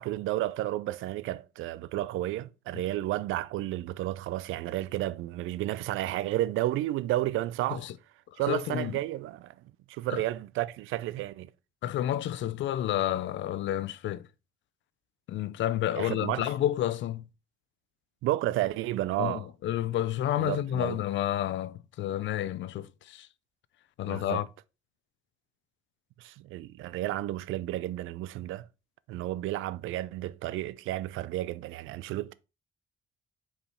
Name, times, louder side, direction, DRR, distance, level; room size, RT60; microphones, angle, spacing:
voice 1, 0.0-7.9 8.4-9.5 9.9-11.5 16.0-16.5 18.2-19.5 20.4-21.0 24.0-24.4 26.2-28.7 29.1-32.3, right 15 dB, 85° right, 0.4 m, -32 dB
voice 2, 8.5-9.0 10.1-10.2 11.8-14.3 15.3-17.2 19.2-23.3 24.0-24.5, left 12 dB, 70° left, 0.5 m, -30 dB
5.5 x 4.9 x 4.2 m
cardioid pair, 90°, 20 cm